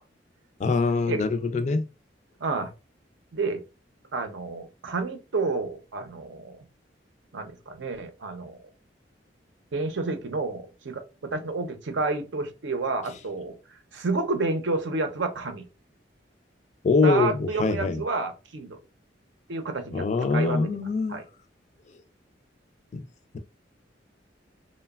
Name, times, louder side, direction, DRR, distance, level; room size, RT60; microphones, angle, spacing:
voice 1, 0.6-1.9 16.8-18.0 19.9-21.2 22.9-23.0, left 4 dB, 40° left, 0.3 m, -24 dB
voice 2, 4.1-6.6 7.3-8.6 9.7-13.6 13.9-15.6 17.0-18.8 19.5-20.7 21.1-21.2, right 3 dB, 80° right, 0.6 m, -30 dB
3.0 x 2.1 x 2.3 m
head